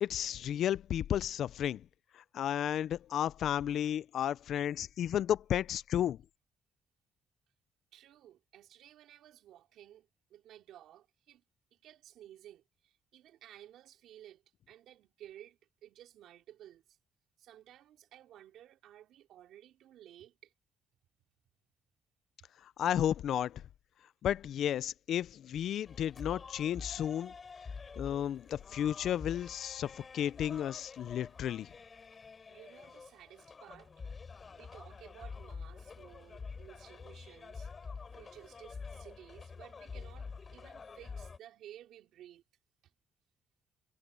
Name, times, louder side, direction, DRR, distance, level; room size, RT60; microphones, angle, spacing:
voice 1, 0.0-1.8 2.1-6.2 22.8-23.6 24.2-27.3 28.0-31.7, left 10 dB, 60° left, 0.4 m, -33 dB
voice 2, 7.9-11.4 11.7-17.0 17.4-20.5 32.5-33.9 34.5-37.7 38.1-42.4 42.8-42.9, right 12 dB, 85° right, 4.6 m, -55 dB
sound 1, 25.8-41.4, left 5 dB, 30° left, 3.4 m, -47 dB
cardioid pair, 175°, 0 cm